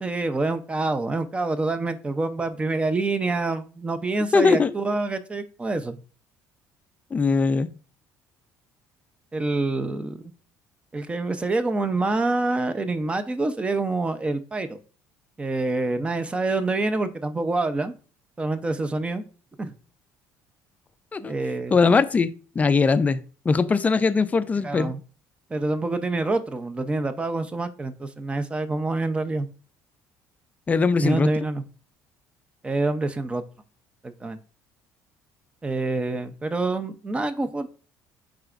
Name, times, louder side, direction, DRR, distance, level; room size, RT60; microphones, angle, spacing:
voice 1, 0.0-6.0 9.3-10.2 10.9-14.8 15.4-17.9 18.4-19.2 19.6-19.7 21.2-21.8 24.6-25.0 25.5-29.5 31.0-31.6 32.6-33.4 34.0-34.4 35.6-37.7, right 2 dB, 15° right, 0.7 m, -26 dB
voice 2, 4.3-4.7 7.1-7.7 21.1-21.3 21.7-22.3 22.6-24.9 30.7-31.3, left 4 dB, 25° left, 0.5 m, -20 dB
7.7 x 4.9 x 2.5 m
cardioid pair, 115°, 7 cm